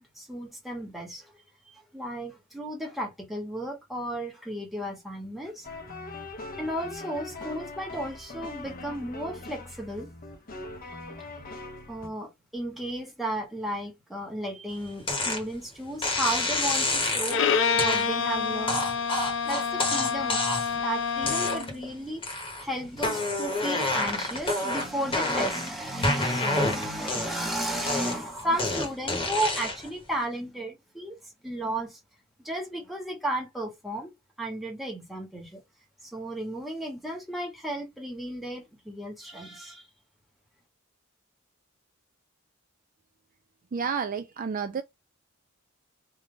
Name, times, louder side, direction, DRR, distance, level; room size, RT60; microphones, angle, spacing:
voice 1, 0.2-1.3 1.7-5.7 6.6-10.1 11.9-17.4 17.7-18.8 19.4-20.4 20.8-22.2 22.6-31.2 31.4-32.0 32.4-34.1 34.4-35.6 36.0-39.9, right 1 dB, ahead, 1.5 m, -34 dB
sound 1, 5.6-12.1, left 2 dB, 45° left, 1.0 m, -41 dB
sound 2, 15.1-15.4 16.0-17.4 17.8-18.1 18.7-20.8 21.2-21.8 22.2-22.6 23.0-25.7 26.0-27.5 27.9-29.9, left 2 dB, 25° left, 1.5 m, -28 dB
Bowed string instrument, 17.3-21.8, left 6 dB, 65° left, 0.7 m, -27 dB
voice 2, 43.7-44.8, right 6 dB, 40° right, 0.4 m, -30 dB
3.5 x 3.0 x 3.9 m
head